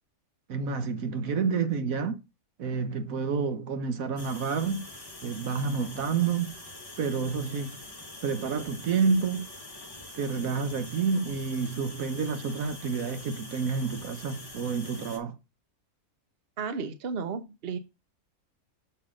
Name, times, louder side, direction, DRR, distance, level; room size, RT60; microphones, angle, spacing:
voice 1, 0.5-2.2 2.6-4.8 5.2-6.5 7.0-7.8 8.2-9.5 10.2-15.4, right 5 dB, 70° right, 1.3 m, -29 dB
sound 1, 4.2-15.2, left 2 dB, 15° left, 1.3 m, -45 dB
voice 2, 16.6-17.8, right 5 dB, 45° right, 1.1 m, -33 dB
6.9 x 5.7 x 3.7 m
omnidirectional pair, 1.5 m